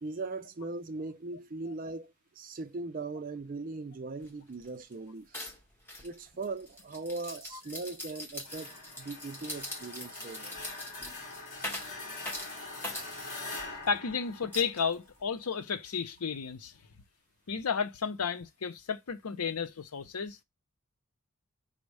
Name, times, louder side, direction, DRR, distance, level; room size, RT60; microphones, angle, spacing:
voice 1, 0.0-5.5 6.0-10.7 11.6-11.7 12.5-13.0 13.4-13.8, right 3 dB, 40° right, 0.4 m, -40 dB
sound 1, 4.2-4.3 4.6-4.9 5.3-13.9 14.5-15.2, left 1 dB, 10° left, 1.0 m, -42 dB
sound 2, 8.5-15.2, left 3 dB, 40° left, 1.6 m, -43 dB
voice 2, 13.9-16.7 17.5-20.4, left 6 dB, 90° left, 0.7 m, -33 dB
5.2 x 2.1 x 4.7 m
head